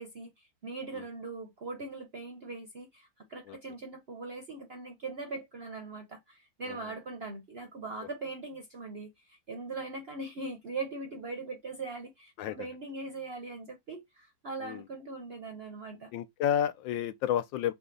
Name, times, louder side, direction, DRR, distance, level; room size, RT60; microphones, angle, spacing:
voice 1, 0.0-16.1, right 3 dB, 55° right, 0.7 m, -41 dB
voice 2, 16.1-17.7, left 10 dB, 85° left, 1.3 m, -31 dB
5.0 x 2.3 x 3.8 m
omnidirectional pair, 2.0 m